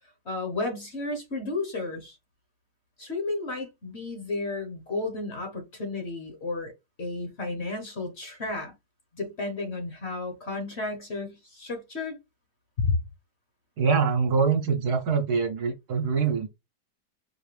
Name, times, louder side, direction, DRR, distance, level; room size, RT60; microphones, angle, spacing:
voice 1, 0.2-2.2 3.0-6.7 7.0-8.7 9.1-12.2 12.8-13.0, left 3 dB, 40° left, 1.2 m, -32 dB
voice 2, 13.8-16.5, right 5 dB, 65° right, 1.4 m, -24 dB
5.0 x 2.6 x 3.2 m
omnidirectional pair, 1.9 m